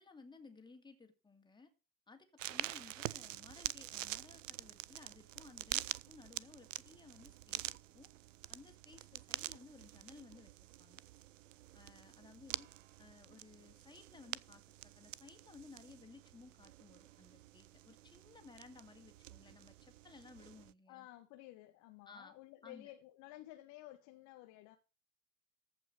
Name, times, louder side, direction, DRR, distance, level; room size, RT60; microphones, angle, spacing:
voice 1, 0.0-1.7 2.1-8.1 8.5-10.5 10.8-11.0 11.7-12.7 13.0-21.1 22.1-22.3 22.6-22.9, left 4 dB, 10° left, 2.3 m, -58 dB
sound 1, 2.4-20.7, right 14 dB, 70° right, 0.5 m, -47 dB
voice 2, 20.9-24.8, left 16 dB, 50° left, 1.1 m, -54 dB
14.5 x 5.4 x 6.2 m
figure-of-eight pair, 75°, 39 cm